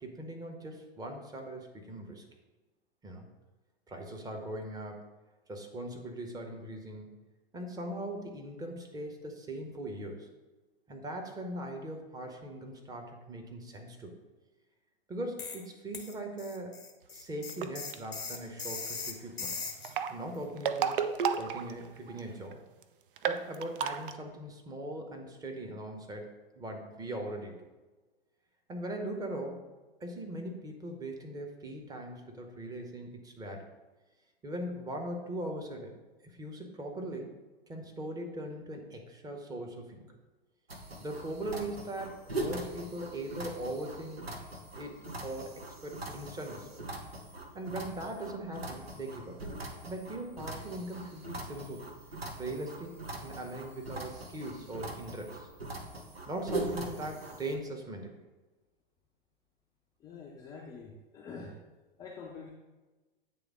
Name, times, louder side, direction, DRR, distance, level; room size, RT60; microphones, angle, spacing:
voice 1, 0.0-2.2 3.0-3.3 3.9-5.1 5.5-7.2 7.5-10.3 10.9-14.1 15.1-16.8 17.1-19.6 20.1-21.0 21.4-22.6 23.3-27.6 28.7-29.7 30.0-33.6 34.4-35.9 36.2-37.3 37.7-40.1 41.0-44.2 44.7-46.8 47.5-49.4 49.9-51.9 52.4-55.5 56.3-58.1, right 1 dB, 10° right, 2 dB, 0.8 m, -40 dB
sound 1, 15.4-15.7 15.9-19.9, left 4 dB, 85° left, 0.8 m, -39 dB
sound 2, 17.5-17.9 19.7-22.2 22.5-22.6 22.8-22.9 23.2-24.1, right 7 dB, 60° right, 0.5 m, -32 dB
sound 3, 40.7-57.6, right 2 dB, 85° right, 0.9 m, -41 dB
voice 2, 60.0-61.6 62.0-62.5, left 4 dB, 15° left, -2 dB, 0.4 m, -46 dB
8.5 x 3.3 x 3.6 m, 1.2 s
figure-of-eight pair, 100°, 30 cm